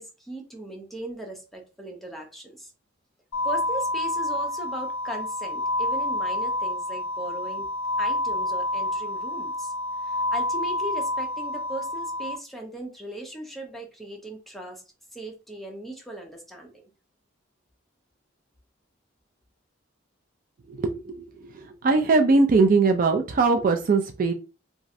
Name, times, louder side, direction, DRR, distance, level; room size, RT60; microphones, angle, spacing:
voice 1, 0.0-2.7 3.4-7.7 8.0-9.7 10.0-14.8 15.1-16.9, right 1 dB, ahead, 0.6 m, -38 dB
sound 1, 3.3-12.4, left 1 dB, 90° left, 0.4 m, -28 dB
voice 2, 20.7-21.2 21.8-24.3, right 3 dB, 40° right, 0.3 m, -20 dB
3.0 x 2.4 x 2.6 m
head